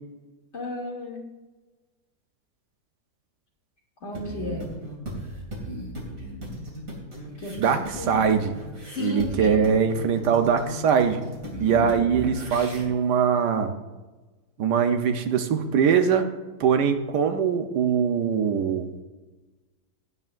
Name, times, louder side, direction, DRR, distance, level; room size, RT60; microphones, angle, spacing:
voice 1, 0.5-1.2 4.0-4.7 7.4-8.1 8.9-9.6, left 2 dB, 45° left, -2 dB, 2.8 m, -34 dB
sound 1, 4.1-12.8, equal, 55° right, 2.8 m, -36 dB
voice 2, 7.6-8.5 9.0-11.2 11.6-13.7 14.6-16.3 16.6-18.9, right 7 dB, 90° right, 7 dB, 1.4 m, -22 dB
16.0 x 9.9 x 2.5 m, 1.2 s
omnidirectional pair, 1.7 m